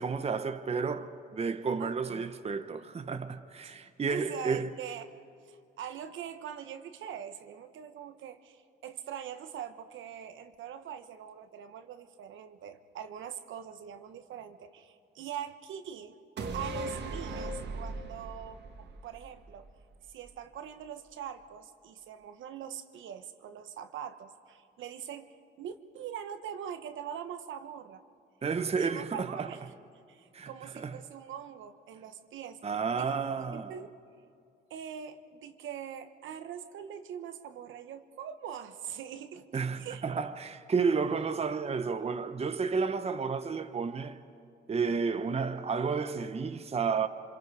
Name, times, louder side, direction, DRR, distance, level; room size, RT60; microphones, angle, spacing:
voice 1, 0.0-4.7 28.4-29.5 30.3-31.0 32.6-33.7 39.5-44.2 44.7-47.1, right 5 dB, 30° right, 0.9 m, -31 dB
voice 2, 1.8-2.4 4.1-5.1 5.4-16.2 16.5-19.7 20.1-28.0 28.8-29.7 30.1-33.2 33.5-33.9 34.7-40.2, right 9 dB, 75° right, 1.2 m, -43 dB
sound 1, 16.4-19.9 20.3-20.4, right 2 dB, 60° right, 1.8 m, -38 dB
28.0 x 26.0 x 4.9 m
cardioid pair, 90°, 20 cm